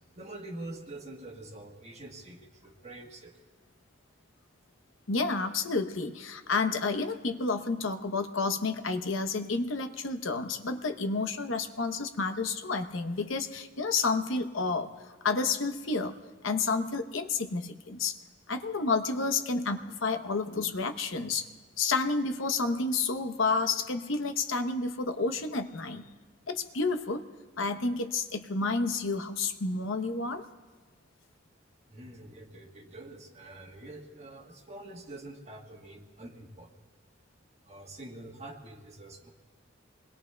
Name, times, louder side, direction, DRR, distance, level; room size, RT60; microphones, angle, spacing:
voice 1, 0.1-3.3 31.9-36.7 37.6-39.3, right 2 dB, 35° right, 1 dB, 1.4 m, -45 dB
voice 2, 5.1-16.1 16.4-18.2 18.5-21.5 21.8-26.0 26.5-27.2 27.6-30.4, left 3 dB, 80° left, 8 dB, 0.8 m, -30 dB
26.5 x 21.5 x 2.2 m, 1.4 s
head